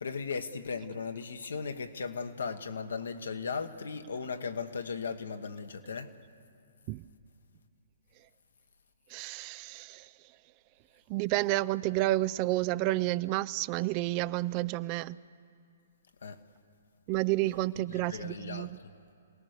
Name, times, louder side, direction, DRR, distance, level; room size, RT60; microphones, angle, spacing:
voice 1, 0.0-6.1 16.2-16.4 17.9-18.9, left 5 dB, 70° left, 1.3 m, -37 dB
voice 2, 9.1-10.1 11.1-15.2 17.1-18.8, right 18 dB, 35° right, 0.4 m, -30 dB
27.5 x 18.0 x 6.7 m
figure-of-eight pair, 125°, 0 cm